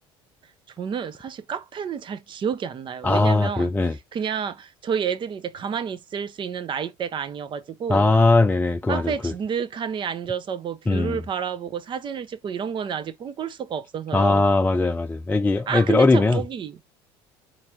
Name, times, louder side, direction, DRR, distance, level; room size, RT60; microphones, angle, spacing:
voice 1, 0.8-8.1 8.9-14.4 15.7-16.8, right 7 dB, 40° right, 0.9 m, -30 dB
voice 2, 3.0-4.0 7.9-9.3 10.9-11.2 14.1-16.4, left 3 dB, 15° left, 0.6 m, -20 dB
4.3 x 3.3 x 3.7 m
supercardioid pair, 95°, 12 cm